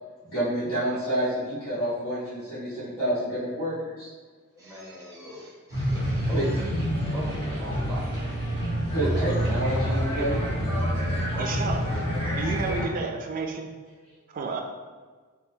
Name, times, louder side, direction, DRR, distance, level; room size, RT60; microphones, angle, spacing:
voice 1, 0.3-4.1 6.0-6.4 8.9-10.4, right 1 dB, 60° left, -14 dB, 1.2 m, -29 dB
voice 2, 4.6-8.4 9.0-9.7 10.9-12.0 12.5-13.1, right 1 dB, 15° right, -7 dB, 0.9 m, -41 dB
sound 1, 5.7-12.8, equal, 25° left, 1.0 m, -27 dB
voice 3, 9.7-10.5 11.4-11.9 12.3-13.7 14.3-14.6, right 4 dB, 40° right, 3 dB, 0.3 m, -32 dB
4.0 x 2.2 x 2.7 m, 1.4 s
head